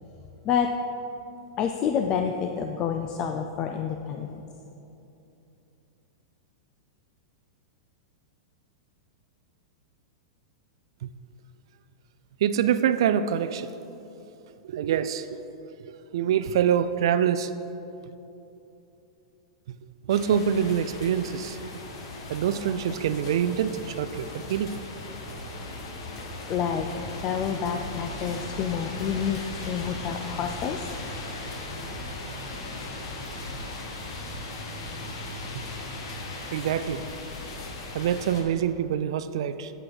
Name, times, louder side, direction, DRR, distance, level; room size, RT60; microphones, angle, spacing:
voice 1, 1.6-4.4 26.5-26.9 27.2-30.9, left 7 dB, 25° left, 5 dB, 0.3 m, -28 dB
voice 2, 12.4-13.7 14.6-15.4 15.8-17.5 19.7-19.8 20.0-21.6 22.3-24.8 35.5-35.6 36.5-37.0 37.9-39.7, right 9 dB, 60° right, 12 dB, 0.3 m, -25 dB
sound 1, 20.1-38.4, left 2 dB, 55° left, 1.4 m, -37 dB
8.4 x 7.7 x 4.8 m, 2.9 s
supercardioid pair, 170°, 3 cm